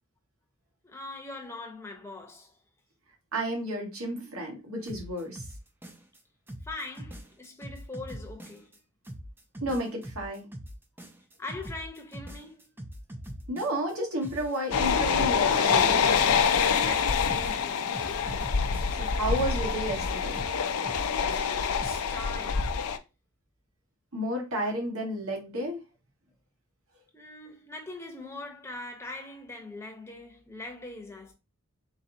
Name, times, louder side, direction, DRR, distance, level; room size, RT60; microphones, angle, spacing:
voice 1, 0.8-2.6 6.6-8.7 11.4-12.7 16.8-17.9 21.7-22.8 27.1-31.3, left 2 dB, 10° left, 0.8 m, -42 dB
voice 2, 3.3-5.4 9.6-10.5 13.5-16.0 19.0-20.4 24.1-25.8, right 1 dB, 75° right, 1.6 m, -32 dB
sound 1, 4.8-6.2 6.5-8.8 9.0-13.9 14.2-16.5 16.8-19.1 19.4-22.0, equal, 10° right, 0.4 m, -43 dB
sound 2, 14.7-23.0, left 6 dB, 80° left, 0.5 m, -26 dB
4.1 x 3.9 x 2.8 m
head